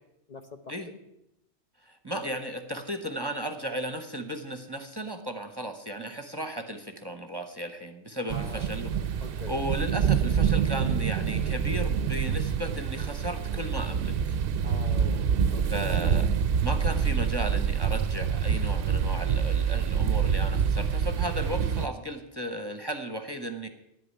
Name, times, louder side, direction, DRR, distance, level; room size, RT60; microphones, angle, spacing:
voice 1, 0.3-1.0 8.3-8.7 9.2-9.5 14.6-15.8, left 3 dB, 40° left, 5 dB, 0.9 m, -43 dB
voice 2, 1.8-8.9 9.5-14.1 15.7-16.3 16.6-23.7, right 1 dB, 20° right, 7 dB, 1.0 m, -35 dB
sound 1, 8.3-21.9, right 7 dB, 60° right, 0.8 m, -26 dB
10.5 x 8.5 x 9.9 m, 0.86 s
omnidirectional pair, 1.2 m